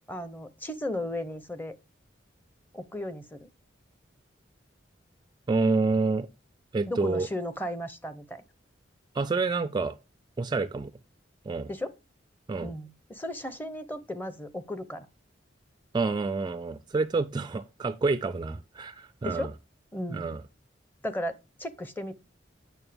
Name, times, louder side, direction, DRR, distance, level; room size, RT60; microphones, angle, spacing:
voice 1, 0.1-1.8 2.7-3.5 6.9-8.4 11.7-11.9 12.6-15.1 19.2-19.5 19.9-20.3 21.0-22.1, left 1 dB, 10° left, 0.7 m, -35 dB
voice 2, 5.5-6.3 6.7-7.3 9.1-9.9 10.4-10.9 11.5-11.7 12.5-12.7 15.9-19.5 20.1-20.4, right 3 dB, 25° right, 0.3 m, -28 dB
8.9 x 6.4 x 3.4 m
head